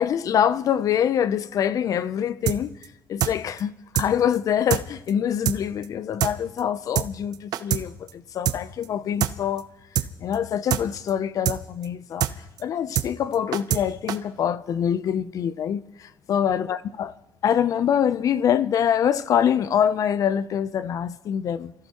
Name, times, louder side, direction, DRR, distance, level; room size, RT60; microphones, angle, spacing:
voice 1, 0.0-2.7 3.1-9.7 10.2-12.3 12.6-17.1 17.4-21.7, left 9 dB, 55° left, 0.6 m, -25 dB
sound 1, 2.5-2.6 2.8-2.9 3.2-3.3 3.6-3.7 3.9-4.1 4.3-4.4 4.7-4.8 5.1-5.2 5.4-5.6 5.8-5.9 6.2-6.3 6.6-6.7 6.9-7.1 7.3-7.8 8.1-8.2 8.4-8.6 8.8-8.9 9.2-9.3 9.6-9.7 9.9-10.1 10.3-10.4 10.7-10.8 11.1-11.2 11.4-11.6 11.8-11.9 12.2-12.3 12.6-12.7 12.9-13.1 13.3-13.8 14.1-14.2, right 11 dB, 65° right, 0.7 m, -24 dB
28.0 x 14.5 x 3.0 m
cardioid pair, 130°, 7 cm